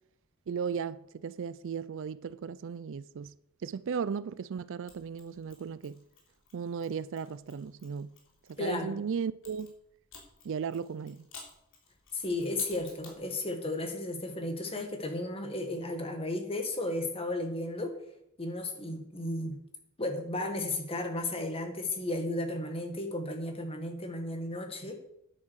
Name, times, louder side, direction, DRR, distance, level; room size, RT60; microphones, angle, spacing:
voice 1, 0.5-3.3 3.6-6.0 6.5-8.1 8.5-9.7 10.4-11.3, right 6 dB, 60° right, 0.4 m, -36 dB
Mechanisms, 4.9-8.7 9.4-13.3, left 4 dB, 60° left, 3.3 m, -54 dB
voice 2, 8.6-9.0 12.1-17.9 18.4-19.6 20.0-25.0, left 2 dB, 25° left, 1.7 m, -34 dB
10.0 x 8.6 x 6.3 m
head